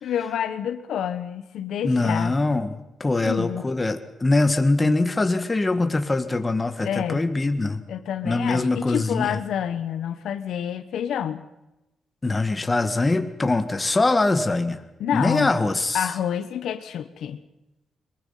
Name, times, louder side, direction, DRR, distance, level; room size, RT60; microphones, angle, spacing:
voice 1, 0.0-2.3 3.2-3.7 6.8-7.2 7.9-11.4 15.0-15.5 15.9-17.4, left 9 dB, 85° left, 11 dB, 1.2 m, -28 dB
voice 2, 1.8-7.8 8.2-9.4 12.2-14.8 15.1-16.1, left 2 dB, 20° left, 8 dB, 1.7 m, -23 dB
22.5 x 22.0 x 5.8 m, 0.96 s
cardioid pair, 125°, 0 cm